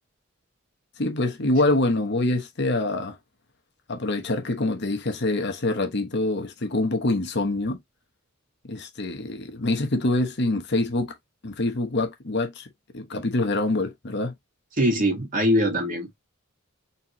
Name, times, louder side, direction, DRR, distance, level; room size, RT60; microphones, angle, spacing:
voice 1, 1.0-3.2 3.9-7.8 8.6-11.1 11.4-12.7 12.9-14.3, left 2 dB, 55° left, 1.0 m, -25 dB
voice 2, 14.8-16.2, equal, 40° right, 1.9 m, -22 dB
4.2 x 3.3 x 3.0 m
head